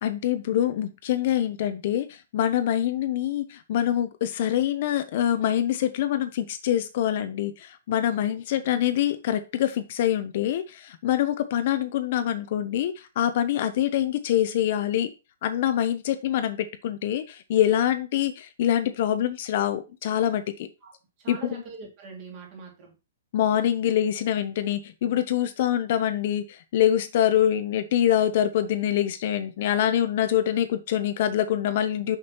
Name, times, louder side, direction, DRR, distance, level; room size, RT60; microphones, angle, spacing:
voice 1, 0.0-15.1 15.4-20.7 21.3-21.4 23.3-32.2, left 11 dB, 40° left, 10 dB, 0.5 m, -25 dB
voice 2, 21.2-22.9, right 4 dB, 30° right, 0 dB, 2.4 m, -43 dB
6.4 x 5.9 x 2.9 m, 0.29 s
hypercardioid pair, 175°, 0 cm